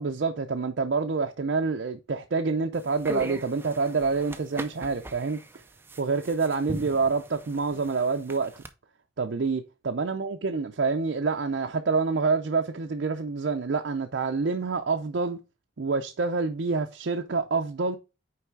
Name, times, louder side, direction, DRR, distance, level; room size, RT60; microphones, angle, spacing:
voice 1, 0.0-5.4 6.0-8.6 9.2-15.4 15.8-18.0, right 4 dB, 60° right, 0.5 m, -27 dB
sound 1, 2.7-8.7, right 1 dB, 10° right, 0.5 m, -40 dB
5.7 x 4.7 x 4.6 m
head